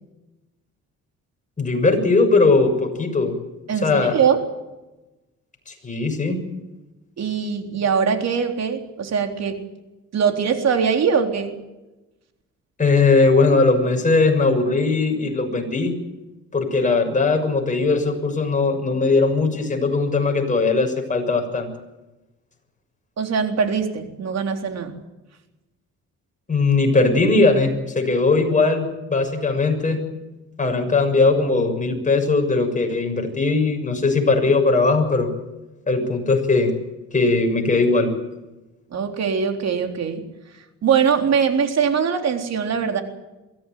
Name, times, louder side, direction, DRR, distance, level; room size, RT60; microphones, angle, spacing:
voice 1, 1.6-3.3 3.8-4.2 5.7-6.4 12.8-15.9 16.5-21.7 26.5-30.1 30.6-35.3 35.9-36.7 37.1-38.1, left 3 dB, 25° left, 3 dB, 6.7 m, -19 dB
voice 2, 3.7-4.4 7.2-9.6 10.1-11.5 23.2-24.9 38.9-40.3 40.8-43.0, right 6 dB, 60° right, 5 dB, 3.8 m, -22 dB
23.0 x 16.0 x 9.3 m, 1.0 s
cardioid pair, 90°, 30 cm